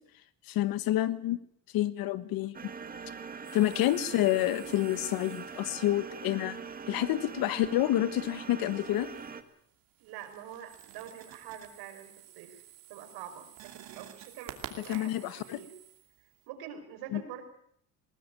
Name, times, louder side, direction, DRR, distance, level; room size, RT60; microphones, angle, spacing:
voice 1, 0.5-1.4 1.7-2.5 3.5-6.6 6.9-9.1 14.8-15.6 17.1-17.2, left 14 dB, 65° left, 14 dB, 1.4 m, -28 dB
sound 1, 2.5-9.4, right 5 dB, 25° right, 1.6 m, -42 dB
sound 2, 3.4-5.9 8.4-9.4 9.8-16.5, right 12 dB, 65° right, 2.8 m, -51 dB
voice 2, 10.0-12.6 12.9-15.7 16.5-17.4, right 9 dB, 90° right, 6 dB, 5.2 m, -45 dB
20.0 x 18.5 x 9.1 m, 0.68 s
cardioid pair, 160°, 37 cm